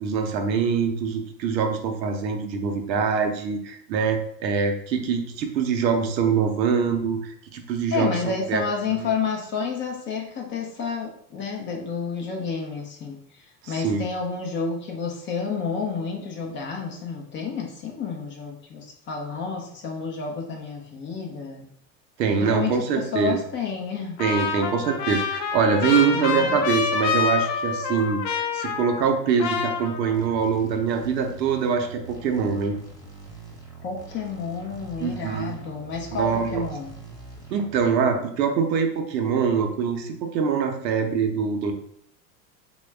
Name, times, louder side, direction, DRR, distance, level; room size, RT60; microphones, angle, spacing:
voice 1, 0.0-8.6 8.9-9.1 13.6-14.0 22.2-23.4 24.2-32.8 35.0-35.5 36.1-36.7 37.5-41.7, right 6 dB, 80° right, 4 dB, 0.7 m, -24 dB
voice 2, 7.9-21.7 22.4-24.2 26.1-26.6 33.8-36.9, left 5 dB, 25° left, 1 dB, 0.4 m, -30 dB
Trumpet, 24.2-29.1 29.4-30.4, left 6 dB, 85° left, 0.6 m, -27 dB
sound 1, 30.1-37.8, right 4 dB, 5° left, 0.8 m, -43 dB
3.0 x 2.2 x 3.2 m, 0.69 s
hypercardioid pair, 90°, 50 cm